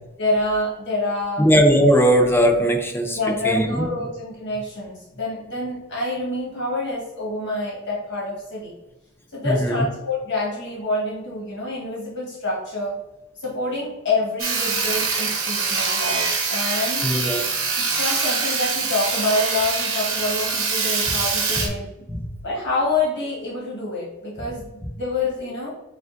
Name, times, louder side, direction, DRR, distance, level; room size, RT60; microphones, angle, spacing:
voice 1, 0.2-1.4 3.1-8.7 9.3-12.9 13.3-17.0 17.7-21.8 22.4-25.7, left 2 dB, 55° left, -5 dB, 1.4 m, -27 dB
voice 2, 1.4-3.2 3.4-3.9 9.4-9.9 17.0-17.4 22.1-22.2, equal, 10° left, 3 dB, 0.5 m, -18 dB
Sawing, 14.4-21.7, right 4 dB, 65° right, 0.9 m, -24 dB
6.7 x 2.4 x 2.5 m, 1.0 s
head